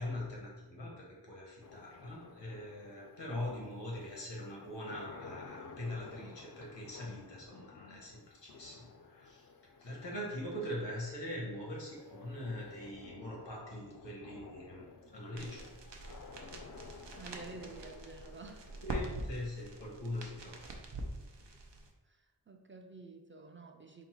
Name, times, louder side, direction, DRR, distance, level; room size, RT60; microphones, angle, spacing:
voice 1, 0.0-9.5 9.8-14.8 15.1-15.7 18.8-20.6, left 1 dB, 90° left, -2 dB, 1.2 m, -42 dB
sound 1, 1.6-20.6, left 4 dB, 50° left, 0.5 m, -54 dB
sound 2, 15.4-21.9, right 2 dB, 85° right, 0.6 m, -44 dB
voice 2, 17.1-18.7 22.1-24.1, right 3 dB, 30° right, 4 dB, 0.4 m, -50 dB
4.0 x 2.1 x 4.3 m, 1.2 s
wide cardioid pair, 50°, 42 cm